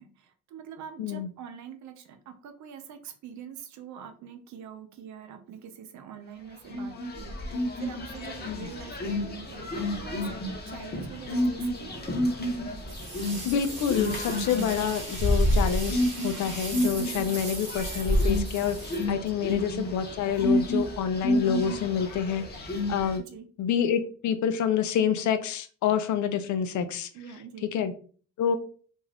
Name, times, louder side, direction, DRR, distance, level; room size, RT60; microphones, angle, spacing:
voice 1, 0.0-12.1 19.4-19.5 23.3-23.5 27.1-27.7, right 7 dB, 70° right, 7 dB, 0.6 m, -44 dB
voice 2, 1.0-1.3 8.5-8.7 13.4-23.2 23.6-27.1 27.7-27.9 28.4-28.6, left 8 dB, 70° left, 9 dB, 0.5 m, -28 dB
sound 1, 6.7-23.2, left 1 dB, 35° left, 0.9 m, -29 dB
sound 2, 12.9-19.6, right 3 dB, 40° right, 1.3 m, -39 dB
2.5 x 2.3 x 3.3 m, 0.42 s
cardioid pair, 90°, 30 cm